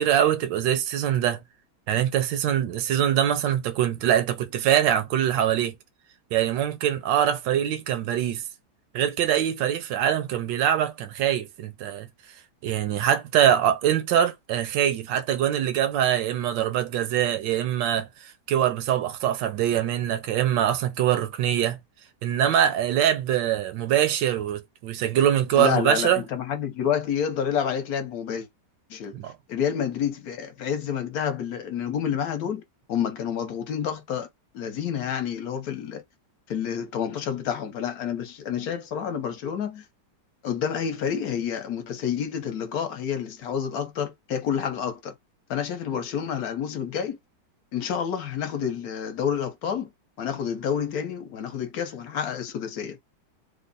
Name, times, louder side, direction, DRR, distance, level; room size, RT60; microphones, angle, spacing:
voice 1, 0.0-1.4 1.9-5.7 6.3-8.4 8.9-12.1 12.6-21.8 22.2-26.2 29.1-29.3, right 10 dB, 85° right, 1.3 m, -23 dB
voice 2, 25.5-28.5 28.9-29.2 29.5-32.6 32.9-34.3 34.5-36.0 36.5-39.8 40.4-45.1 45.5-47.2 47.7-49.9 50.2-53.0, left 8 dB, 65° left, 1.1 m, -29 dB
3.5 x 2.0 x 3.8 m
omnidirectional pair, 1.9 m